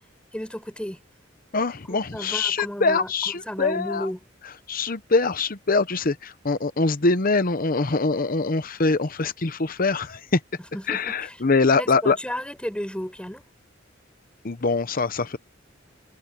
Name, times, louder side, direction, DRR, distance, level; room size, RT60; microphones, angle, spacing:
voice 1, 0.3-1.0 1.9-4.2 10.7-11.4 11.7-13.4, equal, 5° left, 4.7 m, -33 dB
voice 2, 1.5-4.1 4.7-10.4 10.9-12.2 14.4-15.4, left 3 dB, 50° left, 0.9 m, -23 dB
head